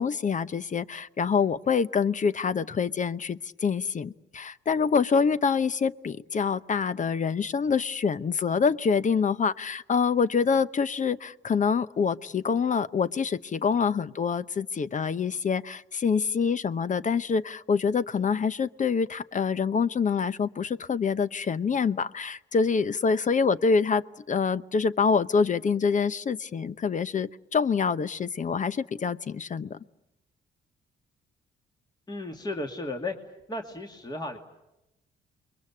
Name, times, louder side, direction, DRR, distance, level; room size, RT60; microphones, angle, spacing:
voice 1, 0.0-29.8, left 5 dB, 40° left, 16 dB, 0.9 m, -26 dB
voice 2, 32.1-34.4, left 2 dB, 20° left, 4 dB, 2.4 m, -35 dB
29.0 x 22.0 x 8.5 m, 0.92 s
cardioid pair, 90°, 20 cm